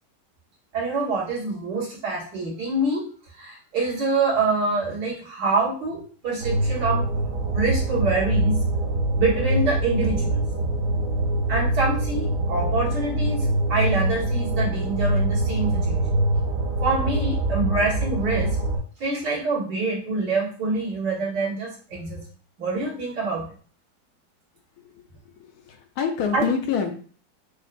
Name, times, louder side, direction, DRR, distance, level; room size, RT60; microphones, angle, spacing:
voice 1, 0.7-3.1 3.3-7.1 7.5-8.6 9.2-10.4 11.5-16.2 16.8-18.6 19.0-22.2 22.6-23.4 26.3-26.4, right 3 dB, 75° right, -6 dB, 2.1 m, -26 dB
sound 1, 6.4-18.8, right 1 dB, 60° right, 1.4 m, -24 dB
voice 2, 24.8-26.9, left 6 dB, 70° left, 5 dB, 1.0 m, -27 dB
6.2 x 2.2 x 2.5 m, 0.44 s
omnidirectional pair, 1.8 m